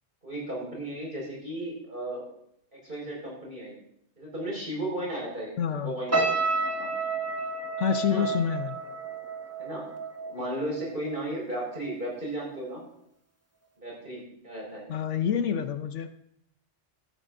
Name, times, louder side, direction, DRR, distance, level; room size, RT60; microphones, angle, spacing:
voice 1, 0.2-2.3 2.7-3.7 4.2-5.5 5.7-6.9 8.0-8.3 9.6-9.9 10.2-12.8 13.8-14.9, right 1 dB, 45° right, -3 dB, 5.4 m, -35 dB
voice 2, 5.6-5.9 7.8-8.8 14.9-16.1, left 8 dB, 70° left, 9 dB, 1.0 m, -27 dB
sound 1, 6.1-11.4 11.7-12.0, right 3 dB, 10° right, 1.3 m, -31 dB
15.5 x 13.5 x 2.6 m, 0.74 s
omnidirectional pair, 1.3 m